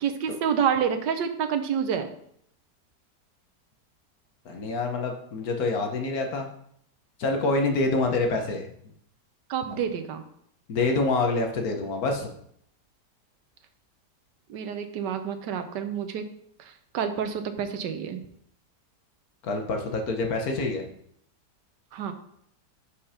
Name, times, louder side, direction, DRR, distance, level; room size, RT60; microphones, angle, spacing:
voice 1, 0.0-2.1 9.5-10.2 14.5-16.2 16.6-18.2 21.9-22.1, right 7 dB, 80° right, 8 dB, 1.4 m, -28 dB
voice 2, 4.4-6.5 7.2-8.7 9.7-9.8 10.7-12.3 19.4-20.8, left 3 dB, 60° left, 3 dB, 1.4 m, -26 dB
5.8 x 5.0 x 5.6 m, 0.69 s
omnidirectional pair, 1.8 m